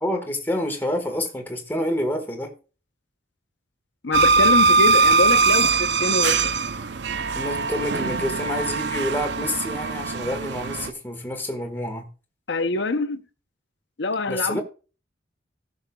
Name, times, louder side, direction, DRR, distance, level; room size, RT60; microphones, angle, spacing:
voice 1, 0.0-2.5 7.3-12.1 14.3-14.6, left 1 dB, 10° left, 1.5 m, -28 dB
voice 2, 4.0-6.5 12.5-13.2 14.0-14.6, left 3 dB, 65° left, 0.8 m, -25 dB
sound 1, 4.1-10.9, right 4 dB, 60° right, 0.6 m, -21 dB
17.5 x 6.4 x 2.3 m
head